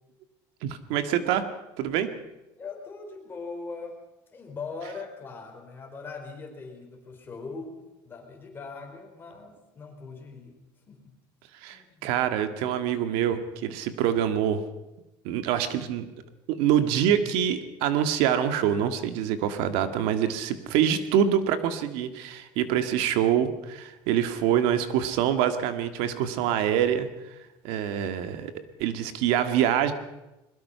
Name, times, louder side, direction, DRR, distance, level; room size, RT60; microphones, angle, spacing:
voice 1, 0.6-1.5 1.8-2.1 11.6-14.6 15.2-16.1 16.5-27.1 27.6-28.5 28.8-29.9, right 9 dB, 80° right, 9 dB, 1.9 m, -25 dB
voice 2, 2.6-4.0 4.3-11.1 11.7-12.2, left 4 dB, 20° left, 1 dB, 5.0 m, -41 dB
22.5 x 21.0 x 5.8 m, 0.98 s
cardioid pair, 150°, 10 cm